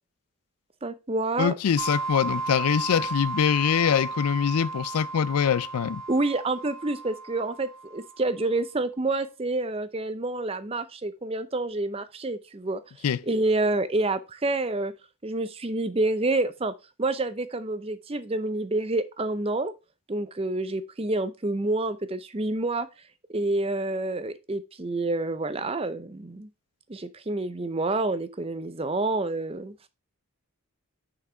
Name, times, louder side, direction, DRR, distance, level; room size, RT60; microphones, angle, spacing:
voice 1, 0.8-1.5 6.1-12.8 13.3-14.9 15.2-16.7 17.0-19.7 20.1-22.9 23.3-26.5 26.9-29.7, right 2 dB, 25° right, 0.6 m, -28 dB
voice 2, 1.4-6.0 13.0-13.2, left 7 dB, 85° left, 0.4 m, -24 dB
sound 1, 1.8-8.3, right 3 dB, 60° right, 1.4 m, -34 dB
6.1 x 6.0 x 4.4 m
head